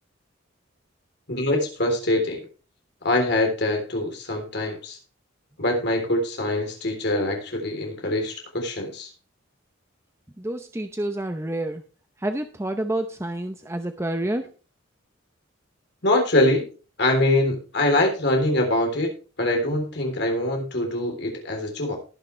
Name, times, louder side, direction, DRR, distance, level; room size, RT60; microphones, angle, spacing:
voice 1, 1.3-2.4 3.0-5.0 5.6-9.1 16.0-16.6 17.0-19.1 19.4-22.0, left 1 dB, 55° left, 2 dB, 3.5 m, -23 dB
voice 2, 10.4-11.8 12.2-14.5, right 1 dB, 15° right, 7 dB, 0.7 m, -28 dB
19.0 x 6.5 x 3.3 m, 0.36 s
head